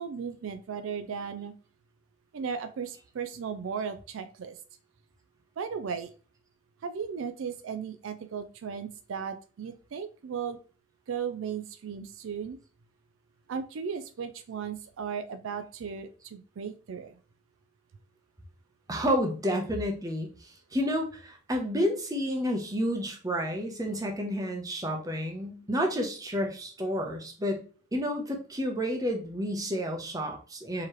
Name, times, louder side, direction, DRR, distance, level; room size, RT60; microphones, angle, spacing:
voice 1, 0.0-1.5 2.3-4.6 5.6-6.1 6.8-10.6 11.1-12.6 13.5-17.2, right 6 dB, 70° right, 10 dB, 0.4 m, -36 dB
voice 2, 18.9-20.3 20.7-27.6 27.9-30.9, equal, 15° right, 2 dB, 0.8 m, -30 dB
4.7 x 3.0 x 3.1 m, 0.39 s
head